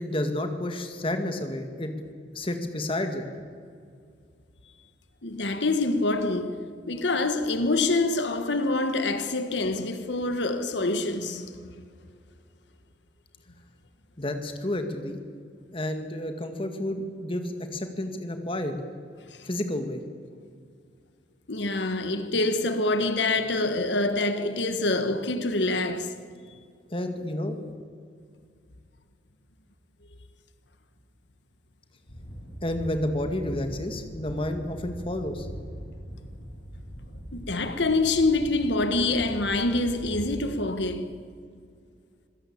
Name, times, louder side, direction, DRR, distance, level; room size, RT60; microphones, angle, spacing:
voice 1, 0.0-1.9 2.3-3.3 14.2-15.2 15.7-18.7 19.5-20.0 26.9-27.6 32.6-35.5, left 1 dB, 30° left, 2.0 m, -30 dB
voice 2, 5.2-11.7 19.3-19.5 21.5-26.1 37.3-41.2, left 2 dB, 80° left, 1.5 m, -26 dB
sound 1, 32.1-40.4, equal, 60° left, 6.1 m, -41 dB
26.0 x 16.5 x 8.6 m
head